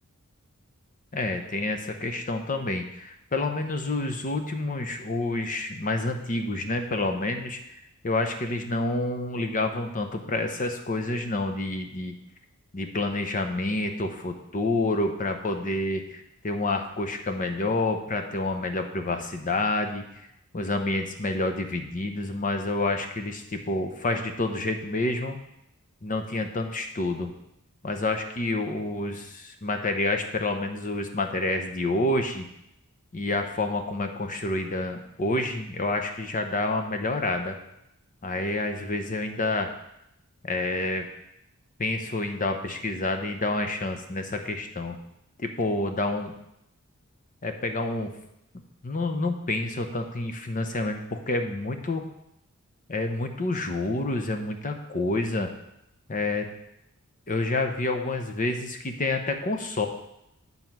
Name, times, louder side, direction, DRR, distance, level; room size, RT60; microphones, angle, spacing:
voice 1, 1.1-7.6 8.0-12.2 12.7-20.0 20.5-25.4 26.0-27.3 27.8-32.5 33.1-37.6 38.2-39.7 40.4-41.0 41.8-45.0 45.4-46.3 47.4-48.1 48.5-52.0 52.9-55.5 56.1-56.5 57.3-59.9, left 2 dB, 35° left, 6 dB, 0.8 m, -28 dB
9.2 x 4.0 x 5.9 m, 0.82 s
head